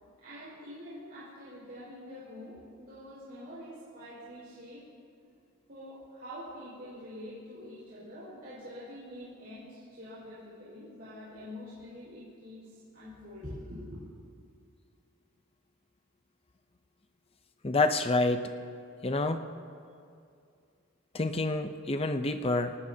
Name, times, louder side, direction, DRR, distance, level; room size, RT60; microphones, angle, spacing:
voice 1, 0.2-4.8 5.7-14.0, left 1 dB, 50° right, -10 dB, 5.0 m, -45 dB
voice 2, 17.6-18.5 19.0-19.4 21.1-22.8, left 2 dB, 30° left, 8 dB, 0.6 m, -28 dB
24.0 x 19.0 x 2.8 m, 2.4 s
head